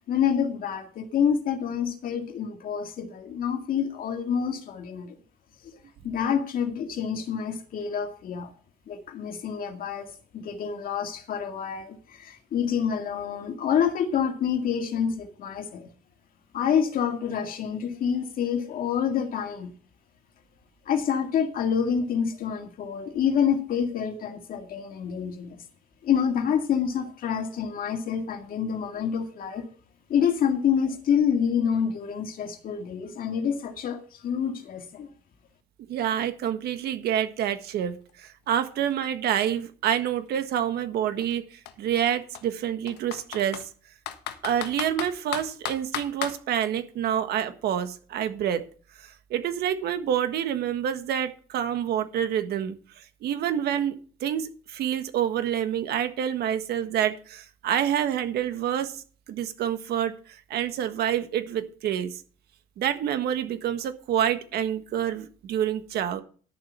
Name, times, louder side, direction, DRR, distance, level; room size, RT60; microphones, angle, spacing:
voice 1, 0.1-5.1 6.0-8.5 8.9-15.9 16.5-19.7 20.9-25.6 26.0-29.7 30.1-35.1, left 7 dB, 55° left, 5 dB, 2.0 m, -27 dB
voice 2, 35.9-43.6 44.4-48.6 49.0-52.7 53.2-53.9 54.2-59.0 59.3-62.2 62.8-66.2, right 10 dB, 70° right, 9 dB, 1.5 m, -27 dB
Computer keyboard, 38.1-38.2 38.5-40.4 41.2-41.3 41.7-41.8 42.3-43.7 44.1-46.4, left 11 dB, 80° left, 1.4 m, -35 dB
11.5 x 7.0 x 5.7 m, 0.40 s
cardioid pair, 110°, 17 cm